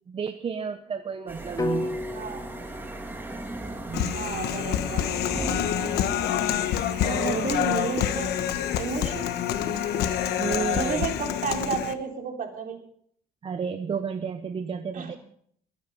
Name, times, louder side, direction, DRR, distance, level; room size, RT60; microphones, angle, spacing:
voice 1, 0.1-2.0 3.9-4.2 7.0-7.6 10.4-11.1 13.4-15.1, right 6 dB, 35° right, 9 dB, 0.9 m, -32 dB
sound 1, 1.3-11.1, right 2 dB, 10° right, 2.4 m, -38 dB
sound 2, 1.6-5.6, left 2 dB, 20° left, 1.5 m, -36 dB
voice 2, 2.1-2.5 4.1-5.5 5.8-6.0 7.1-8.3 8.8-9.3 10.7-12.8 14.9-15.2, right 5 dB, 55° right, 2 dB, 3.5 m, -32 dB
Human voice, 3.9-11.9, left 11 dB, 75° left, 1.2 m, -27 dB
21.5 x 9.5 x 5.5 m, 0.64 s
cardioid pair, 110°, 17 cm